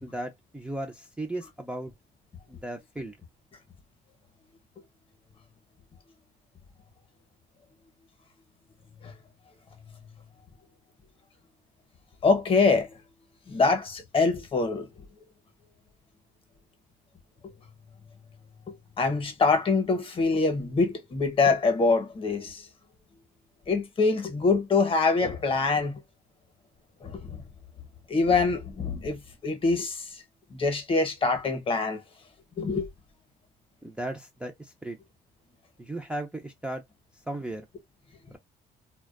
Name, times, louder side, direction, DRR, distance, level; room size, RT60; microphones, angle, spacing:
voice 1, 0.0-1.9 2.5-3.2 33.8-35.0 35.8-36.8 37.3-37.7 38.3-38.4, right 1 dB, 5° right, 0.5 m, -36 dB
voice 2, 12.2-12.9 13.5-14.9 18.7-22.6 23.7-26.0 27.0-27.3 28.1-30.1 30.5-32.0 32.6-32.9, left 4 dB, 35° left, 0.9 m, -24 dB
2.4 x 2.2 x 2.3 m
cardioid pair, 110°, 17 cm